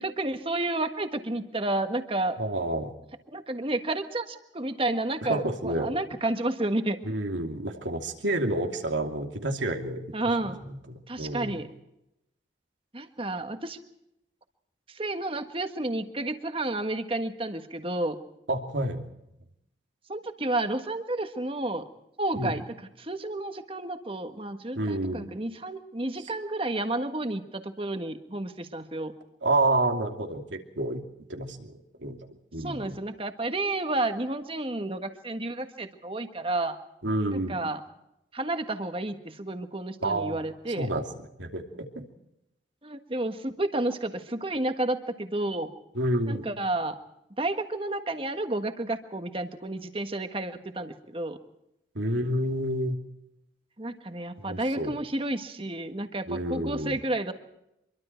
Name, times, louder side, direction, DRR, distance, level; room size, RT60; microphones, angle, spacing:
voice 1, 0.0-2.4 3.3-7.0 10.1-10.6 11.1-11.7 12.9-13.8 14.9-18.2 20.1-21.9 22.2-29.1 32.6-36.8 37.3-37.8 38.3-40.9 42.8-45.7 46.3-47.0 47.4-51.4 53.8-57.3, right 2 dB, 30° right, 7 dB, 1.5 m, -31 dB
voice 2, 2.4-2.9 5.3-5.9 7.1-10.1 10.4-11.6 18.5-19.1 22.4-22.5 24.7-25.3 29.4-31.0 31.3-32.2 32.5-33.0 37.0-37.6 40.0-40.4 40.8-41.0 41.4-42.1 45.9-46.5 51.9-53.0 54.4-54.9 56.3-57.0, right 1 dB, 85° right, 3 dB, 2.7 m, -29 dB
25.5 x 23.0 x 4.5 m, 0.85 s
head